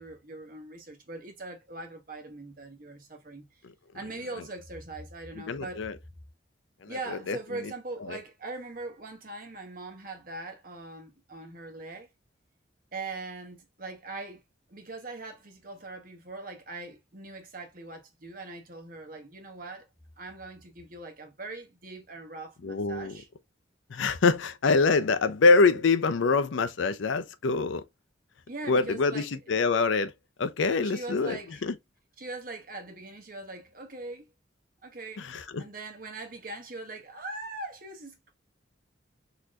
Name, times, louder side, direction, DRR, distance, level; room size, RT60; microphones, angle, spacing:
voice 1, 0.0-3.6 3.9-5.9 6.8-12.1 12.9-14.4 14.7-19.9 20.2-23.3 28.5-29.4 30.8-31.6 32.2-34.3 34.8-38.3, right 2 dB, 45° right, 1.1 m, -41 dB
voice 2, 5.5-5.9 6.8-7.4 8.1-8.2 22.6-23.1 23.9-27.8 28.7-30.1 30.4-31.7 35.2-35.6, left 4 dB, 75° left, 0.5 m, -25 dB
4.1 x 2.8 x 2.4 m
head